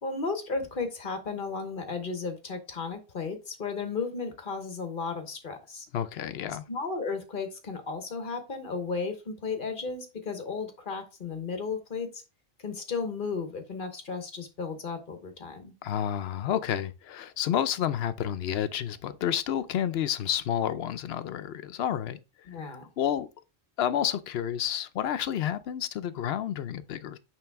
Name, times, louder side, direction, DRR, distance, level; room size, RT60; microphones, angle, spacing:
voice 1, 0.0-5.9 6.7-12.2 12.6-15.7 22.5-22.8, left 4 dB, 55° left, 1.3 m, -34 dB
voice 2, 5.9-6.6 15.8-22.2 23.0-23.3 23.8-27.2, left 10 dB, 80° left, 0.8 m, -30 dB
8.9 x 3.2 x 3.5 m
omnidirectional pair, 1.0 m